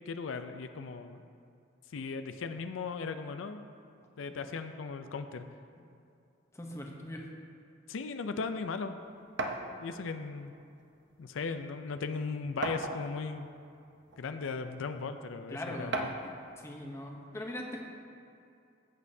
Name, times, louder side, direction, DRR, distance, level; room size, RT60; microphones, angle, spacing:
voice 1, 0.1-1.2 1.9-3.7 4.2-5.4 7.9-9.0 9.8-10.5 11.2-13.5 14.2-16.1, left 4 dB, 85° left, 9 dB, 0.4 m, -37 dB
voice 2, 6.5-7.3 15.5-16.1 16.6-17.8, left 1 dB, 15° left, 0 dB, 0.8 m, -40 dB
sound 1, 9.4-9.7 10.8-10.9 11.3-11.4 12.6-13.3 14.1-14.2 15.9-16.3, right 2 dB, 60° right, 0.7 m, -34 dB
13.5 x 8.3 x 2.7 m, 2.6 s
head